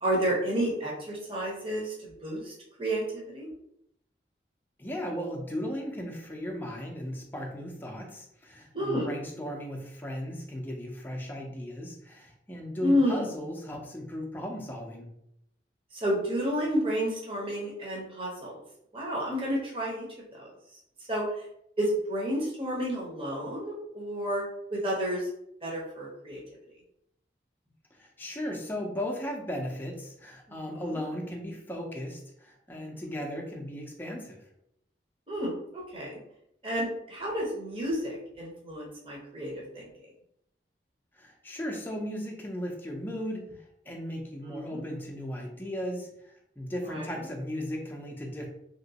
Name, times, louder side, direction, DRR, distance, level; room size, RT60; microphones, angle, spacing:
voice 1, 0.0-2.5 2.8-3.5 8.7-9.1 12.8-13.2 15.9-18.6 18.9-20.1 20.3-20.5 21.1-21.4 21.8-24.4 24.7-25.3 25.6-26.4 30.5-30.8 32.7-33.0 35.3-36.2 36.6-39.9 44.4-44.8 46.8-47.1, equal, 30° right, -3 dB, 0.9 m, -31 dB
voice 2, 4.8-15.1 27.9-34.4 41.1-43.5 43.9-48.5, equal, 10° left, 0 dB, 0.5 m, -36 dB
3.0 x 2.9 x 2.8 m, 0.77 s
head